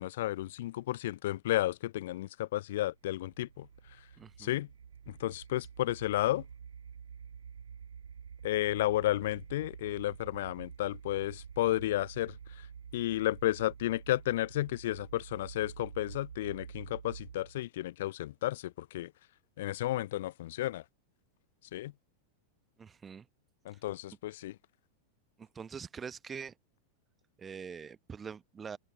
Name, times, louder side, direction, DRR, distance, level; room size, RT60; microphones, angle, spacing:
voice 1, 0.0-3.7 4.4-4.7 5.1-6.4 8.4-12.7 12.9-19.1 19.6-20.8 21.7-21.9 23.6-24.6, left 15 dB, 55° left, 0.5 m, -32 dB
sound 1, 2.8-17.6, right 7 dB, 70° right, 1.0 m, -49 dB
voice 2, 4.2-4.5 22.8-23.3 25.4-26.5 27.4-28.8, right 6 dB, 20° right, 1.0 m, -44 dB
open air
figure-of-eight pair, 90°, 0 cm